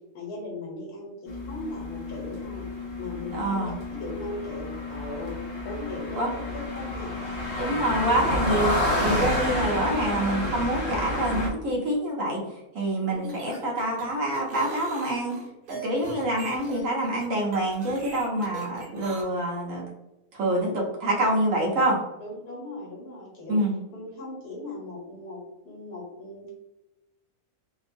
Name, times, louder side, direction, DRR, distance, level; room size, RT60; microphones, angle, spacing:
voice 1, 0.1-2.7 3.0-3.7 4.0-5.4 5.6-6.4 6.7-7.4 13.0-13.4 20.5-20.9 22.2-23.6 23.9-26.5, left 2 dB, 85° left, -2 dB, 1.6 m, -38 dB
sound 1, 1.3-11.5, left 1 dB, 70° left, 0.9 m, -30 dB
voice 2, 3.4-3.7 6.2-6.3 7.6-8.7 9.0-12.4 12.7-15.3 15.7-19.8 20.3-22.0 23.5-23.7, right 1 dB, 65° right, -2 dB, 1.1 m, -26 dB
sound 2, 13.1-19.2, right 3 dB, 80° right, 1.3 m, -41 dB
3.5 x 2.3 x 2.5 m, 0.95 s
omnidirectional pair, 1.6 m